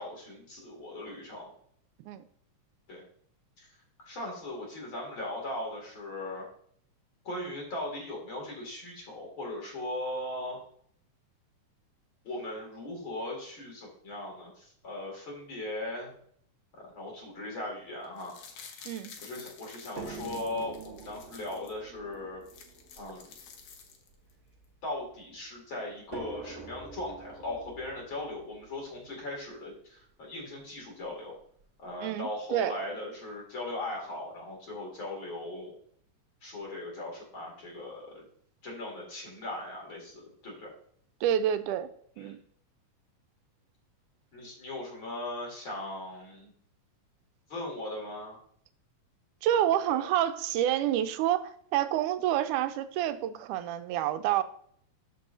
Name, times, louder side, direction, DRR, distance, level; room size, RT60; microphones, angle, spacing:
voice 1, 0.0-1.5 2.9-3.0 3.6-3.7 4.0-6.5 7.2-10.6 12.2-16.1 16.7-18.3 19.2-22.4 23.0-23.4 24.8-31.3 31.8-35.8 36.4-38.2 38.6-40.7 42.2-42.4 44.3-46.5 47.5-48.4 49.9-50.1, left 1 dB, 40° left, 0 dB, 3.1 m, -38 dB
sound 1, 18.0-21.7 22.1-22.2 22.4-24.3 24.6-24.7, left 6 dB, 80° left, 2.7 m, -50 dB
sound 2, 20.0-25.2 26.1-30.1 31.0-31.1 31.6-31.7, right 4 dB, 45° right, 0.9 m, -47 dB
voice 2, 32.0-32.7 41.2-41.9 42.2-42.4 49.4-54.4, right 11 dB, 90° right, 10 dB, 2.1 m, -28 dB
13.0 x 6.1 x 2.7 m, 0.63 s
omnidirectional pair, 3.5 m